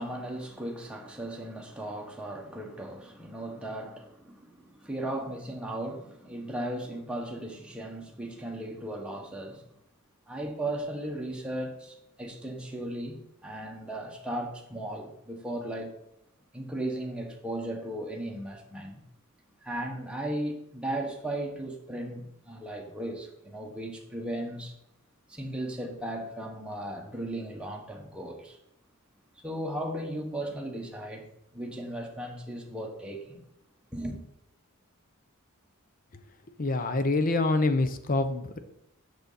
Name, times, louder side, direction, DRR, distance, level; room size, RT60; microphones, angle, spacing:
voice 1, 0.0-9.6 10.3-15.9 16.5-19.0 19.6-24.7 25.3-28.6 29.4-31.3 31.5-33.4 33.9-34.2, right 1 dB, 5° right, 1.2 m, -36 dB
voice 2, 36.6-38.6, left 2 dB, 40° left, 0.7 m, -26 dB
6.9 x 6.6 x 4.1 m
head